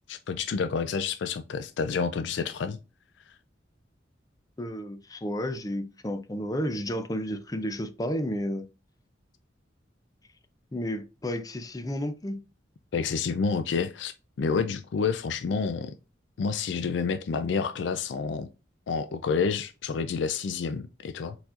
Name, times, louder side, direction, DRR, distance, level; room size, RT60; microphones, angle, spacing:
voice 1, 0.1-2.8 12.9-16.0 16.4-18.5 18.9-21.4, left 5 dB, 75° left, 0.4 m, -29 dB
voice 2, 4.6-8.7 10.7-12.4, equal, 20° left, 0.5 m, -32 dB
4.5 x 4.2 x 2.5 m
head